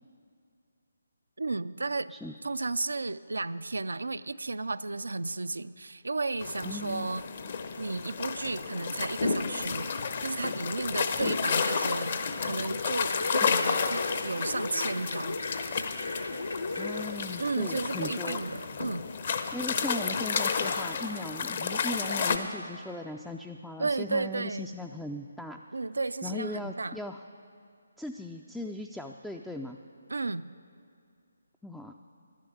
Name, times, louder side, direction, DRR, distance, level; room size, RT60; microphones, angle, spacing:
voice 1, 1.4-2.1 2.4-7.2 7.8-15.4 17.4-19.0 23.8-24.7 25.7-27.0 30.1-30.6, right 3 dB, 75° right, 14 dB, 0.3 m, -33 dB
sound 1, 6.4-22.4, left 5 dB, 45° left, 0.8 m, -31 dB
voice 2, 6.6-7.1 13.4-13.5 16.8-18.4 19.5-25.6 26.2-27.2 28.0-29.8 31.6-31.9, left 1 dB, ahead, 3 dB, 0.3 m, -38 dB
sound 2, 13.1-17.1 17.5-17.6, left 2 dB, 80° left, 1.3 m, -36 dB
11.5 x 10.5 x 7.9 m, 2.4 s
figure-of-eight pair, 145°, 0 cm